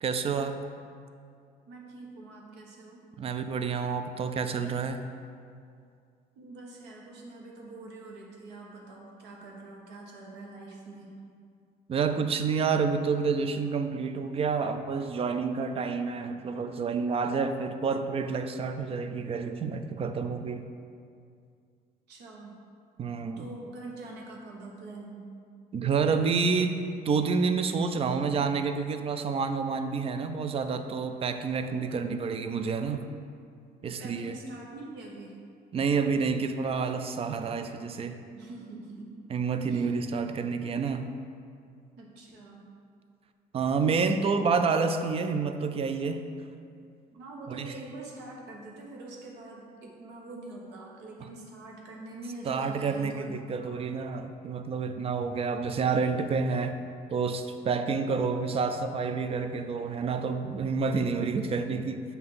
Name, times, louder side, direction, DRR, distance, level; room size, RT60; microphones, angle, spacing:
voice 1, 0.0-0.6 3.2-5.0 11.9-20.7 23.0-23.5 25.7-26.8 27.0-33.1 33.8-34.4 35.7-38.2 39.3-41.1 43.5-46.2 47.5-47.7 52.5-56.8 57.1-62.0, right 5 dB, 35° right, 8 dB, 0.4 m, -29 dB
voice 2, 1.6-3.1 6.3-11.1 22.1-22.6 23.4-25.3 31.9-32.4 34.0-35.4 38.3-39.2 39.7-39.9 41.9-42.7 47.1-53.7 57.7-57.9, right 2 dB, 90° right, -2 dB, 1.2 m, -44 dB
7.5 x 2.8 x 5.7 m, 2.3 s
cardioid pair, 110°, 17 cm